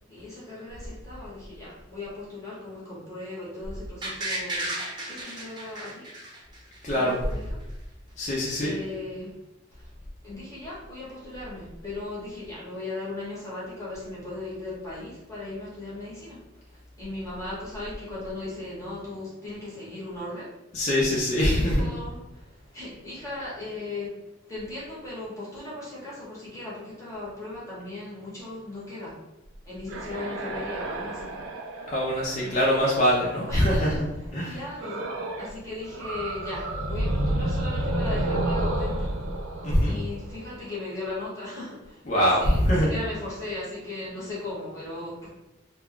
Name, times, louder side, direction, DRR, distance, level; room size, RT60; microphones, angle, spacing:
voice 1, 0.1-6.1 6.9-7.6 8.2-9.4 9.7-9.9 10.2-20.5 21.5-24.1 24.4-29.2 29.6-31.3 31.7-31.8 32.4-33.1 33.5-34.0 34.4-39.1 39.8-45.3, left 2 dB, 15° left, -8 dB, 0.9 m, -38 dB
sound 1, 4.0-6.9 7.3-7.4, right 1 dB, 25° right, 0.6 m, -33 dB
voice 2, 6.8-7.2 8.2-8.7 20.7-21.9 31.9-34.5 39.6-39.9 42.1-42.9, equal, 35° left, -5 dB, 0.5 m, -23 dB
sound 2, 29.5-33.7 34.8-35.6 35.8-40.7, right 1 dB, 85° right, 0.4 m, -30 dB
2.4 x 2.2 x 3.6 m, 1.0 s
head